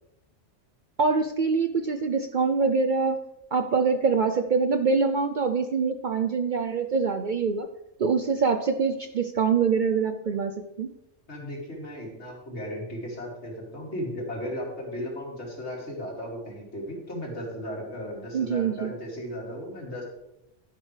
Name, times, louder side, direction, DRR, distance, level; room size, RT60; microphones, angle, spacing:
voice 1, 1.0-3.2 3.5-7.7 8.0-10.9 18.3-18.9, right 5 dB, 55° right, 8 dB, 0.6 m, -24 dB
voice 2, 11.3-20.0, equal, 65° left, -2 dB, 3.0 m, -36 dB
11.5 x 11.0 x 3.3 m, 0.88 s
omnidirectional pair, 1.2 m